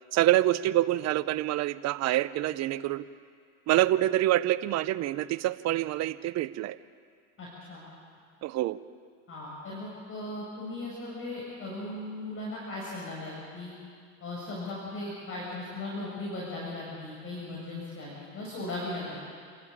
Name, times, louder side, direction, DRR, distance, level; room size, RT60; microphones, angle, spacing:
voice 1, 0.1-3.1 3.7-6.8 8.4-8.8, right 15 dB, 45° right, 14 dB, 0.9 m, -26 dB
voice 2, 7.4-7.8 9.3-13.7 14.2-19.1, left 2 dB, 35° left, -5 dB, 6.7 m, -37 dB
29.0 x 12.0 x 8.6 m, 2.2 s
supercardioid pair, 100°, 36 cm